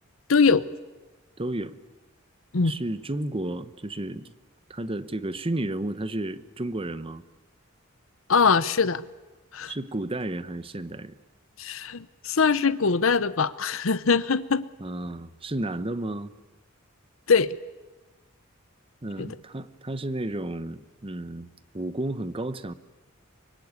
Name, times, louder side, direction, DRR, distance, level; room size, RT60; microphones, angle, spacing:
voice 1, 0.3-0.6 2.5-2.7 8.3-9.0 9.5-9.7 11.6-14.7 17.3-17.5 19.2-19.3, left 5 dB, 70° left, 15 dB, 0.8 m, -22 dB
voice 2, 1.4-1.8 2.6-4.3 4.7-7.2 9.7-11.1 14.8-16.3 19.0-21.5 21.7-22.7, right 1 dB, 25° right, 14 dB, 1.0 m, -32 dB
25.0 x 24.0 x 9.6 m, 1.2 s
head